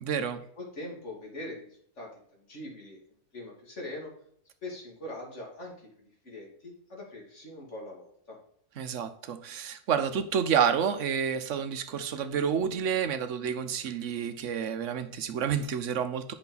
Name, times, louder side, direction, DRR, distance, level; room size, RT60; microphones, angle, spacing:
voice 1, 0.0-0.4 8.8-16.3, right 7 dB, 60° right, 10 dB, 1.0 m, -29 dB
voice 2, 0.6-3.0 3.3-4.1 4.6-8.4, left 1 dB, 45° left, -1 dB, 2.7 m, -42 dB
8.2 x 5.7 x 4.0 m, 0.65 s
omnidirectional pair, 1.6 m